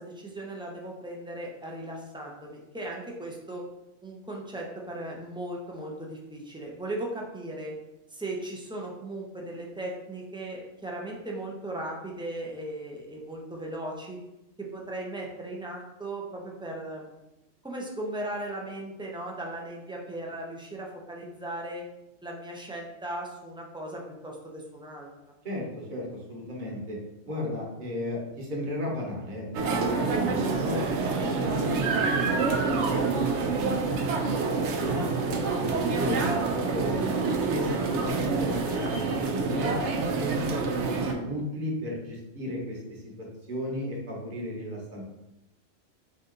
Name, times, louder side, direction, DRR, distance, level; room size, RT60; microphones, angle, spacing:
voice 1, 0.0-3.7 4.0-7.7 8.1-14.2 14.6-17.1 17.6-21.9 22.2-25.1, right 1 dB, 5° right, -2 dB, 0.4 m, -37 dB
voice 2, 25.4-27.0 27.2-30.8 31.1-32.6 32.9-34.1 34.8-45.0, left 1 dB, 40° right, -3 dB, 1.1 m, -35 dB
sound 1, 29.5-41.1, right 4 dB, 70° right, 0.9 m, -27 dB
4.2 x 2.7 x 3.8 m, 0.92 s
omnidirectional pair, 1.3 m